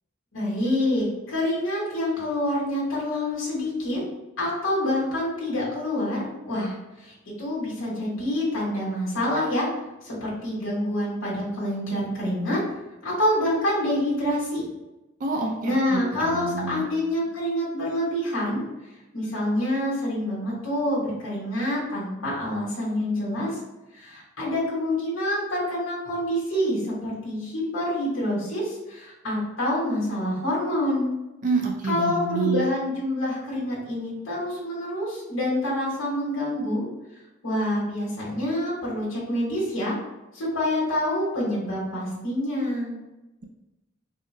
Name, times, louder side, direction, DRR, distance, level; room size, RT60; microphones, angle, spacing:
voice 1, 0.3-4.0 4.4-9.7 10.0-12.6 13.0-14.6 15.6-18.6 19.1-23.6 23.9-31.1 31.8-36.9 37.4-39.9 40.3-43.0, left 1 dB, 70° left, -5 dB, 1.1 m, -27 dB
voice 2, 15.2-15.7 16.2-16.8 31.4-32.6, right 3 dB, 40° right, 1 dB, 0.4 m, -27 dB
3.6 x 2.1 x 3.2 m, 1.0 s
head